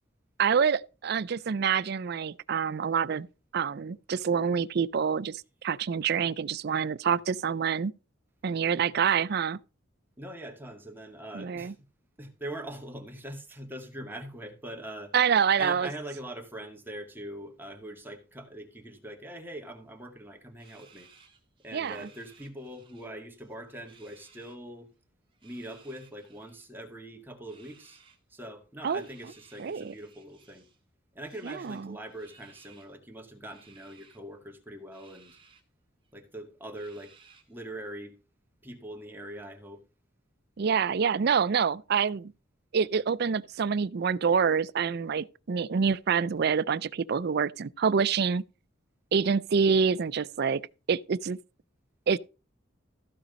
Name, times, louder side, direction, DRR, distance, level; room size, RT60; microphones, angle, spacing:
voice 1, 0.4-3.3 3.5-7.9 8.4-9.6 11.3-11.7 15.1-15.9 21.7-22.1 28.8-29.1 29.6-29.9 31.4-32.0 40.6-42.3 42.7-48.4 49.1-50.6 50.9-51.4 52.1-52.2, right 6 dB, 55° right, 0.4 m, -26 dB
voice 2, 10.2-11.7 12.2-15.1 15.6-21.1 21.6-24.9 25.4-28.0 28.3-30.7 31.1-35.4 36.1-37.1 37.5-38.2 38.6-39.8, right 1 dB, 10° right, 2.2 m, -42 dB
sound 1, 20.6-23.1 23.4-24.6 25.3-26.7 27.4-28.2 28.9-30.8 31.2-32.9 33.5-34.2 34.9-35.6 36.0-36.1 36.8-37.6, right 5 dB, 25° right, 2.1 m, -59 dB
15.0 x 5.1 x 5.3 m
head